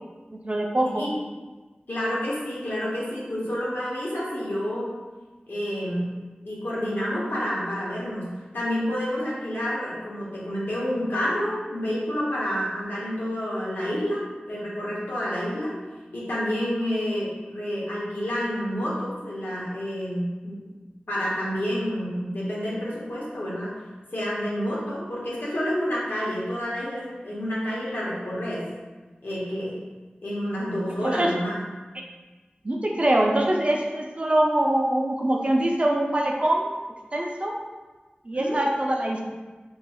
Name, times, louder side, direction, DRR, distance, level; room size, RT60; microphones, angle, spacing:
voice 1, 0.4-1.0 31.0-31.3 32.6-36.7 37.1-37.5 38.3-39.2, right 1 dB, 40° right, 0 dB, 0.4 m, -23 dB
voice 2, 1.9-4.9 5.5-6.1 6.4-8.3 8.5-14.2 14.5-15.7 16.1-20.6 21.1-23.7 24.1-28.6 29.2-29.8 30.2-31.6 38.3-38.6, equal, 80° left, -6 dB, 0.8 m, -29 dB
3.0 x 2.9 x 2.3 m, 1.3 s
wide cardioid pair, 60°, 3 cm